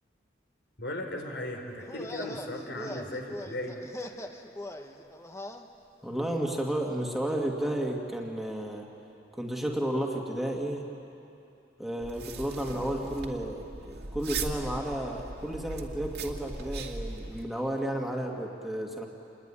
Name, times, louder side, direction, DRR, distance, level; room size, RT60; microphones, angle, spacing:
voice 1, 0.8-3.8, left 1 dB, 75° left, 4 dB, 3.7 m, -37 dB
sound 1, 1.8-5.6, left 1 dB, 15° left, 1.2 m, -41 dB
voice 2, 6.0-8.9 9.3-10.9 11.8-19.1, right 1 dB, ahead, 0 dB, 2.1 m, -32 dB
sound 2, 12.0-17.4, right 3 dB, 60° right, 2.3 m, -39 dB
28.0 x 21.5 x 9.9 m, 2.8 s
head